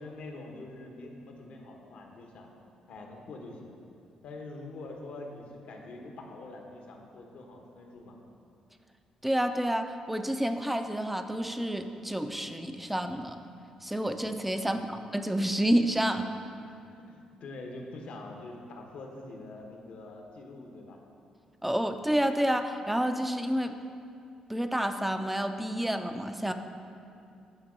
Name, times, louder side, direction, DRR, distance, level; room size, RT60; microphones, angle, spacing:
voice 1, 0.0-2.5 2.9-3.8 4.2-8.2 14.6-15.1 16.6-21.1, left 2 dB, 70° left, 2 dB, 1.0 m, -45 dB
voice 2, 9.2-13.4 13.8-16.3 21.6-23.7 24.5-26.5, equal, 5° right, 7 dB, 0.5 m, -29 dB
8.9 x 3.6 x 6.1 m, 2.6 s
supercardioid pair, 60°, 2 cm